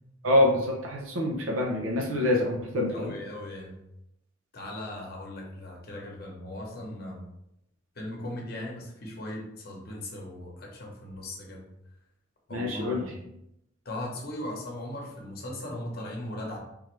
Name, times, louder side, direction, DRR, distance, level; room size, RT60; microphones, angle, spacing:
voice 1, 0.2-3.1 12.5-13.0, left 1 dB, 80° right, -1 dB, 0.7 m, -26 dB
voice 2, 2.9-3.8 4.5-7.2 7.9-11.7 12.5-13.2 13.8-16.6, left 1 dB, 50° left, -1 dB, 0.9 m, -38 dB
3.7 x 3.2 x 3.1 m, 0.82 s
head